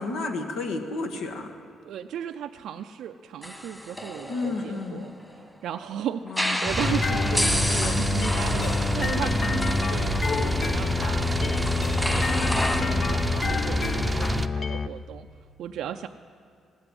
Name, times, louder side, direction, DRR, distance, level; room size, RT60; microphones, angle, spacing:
voice 1, 0.0-1.5 4.3-5.1 6.2-6.9, left 3 dB, 90° left, 4 dB, 1.5 m, -32 dB
voice 2, 1.8-5.1 5.6-10.1 10.4-15.3 15.6-16.1, right 9 dB, 80° right, 6 dB, 0.4 m, -35 dB
sound 1, 3.4-5.5 6.3-12.8, equal, 10° left, 1.5 m, -31 dB
sound 2, 6.6-14.5, right 2 dB, 15° right, 0.6 m, -28 dB
sound 3, 6.8-14.9, left 6 dB, 45° left, 0.4 m, -28 dB
17.0 x 7.8 x 9.7 m, 2.3 s
cardioid pair, 90°, 0 cm